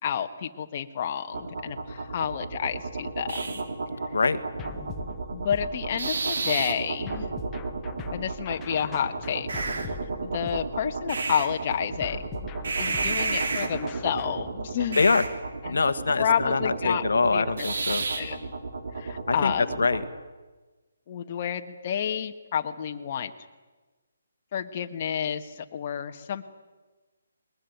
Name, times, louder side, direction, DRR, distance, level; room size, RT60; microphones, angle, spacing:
voice 1, 0.0-3.6 5.3-7.3 8.1-9.9 10.2-12.2 12.8-15.0 15.6-15.8 16.2-17.0 17.3-17.4 18.2-18.4 18.9-19.8 21.1-23.3 24.5-26.4, left 8 dB, 40° left, 6 dB, 1.3 m, -30 dB
sound 1, 1.3-20.1, right 3 dB, 65° right, 3.4 m, -32 dB
sound 2, 4.6-6.3 7.1-11.2 12.0-14.5, left 4 dB, 15° left, 1.4 m, -42 dB
voice 2, 15.7-18.0 19.3-20.0, left 4 dB, 70° left, 11 dB, 1.4 m, -24 dB
20.5 x 20.5 x 9.3 m, 1.2 s
figure-of-eight pair, 150°, 0 cm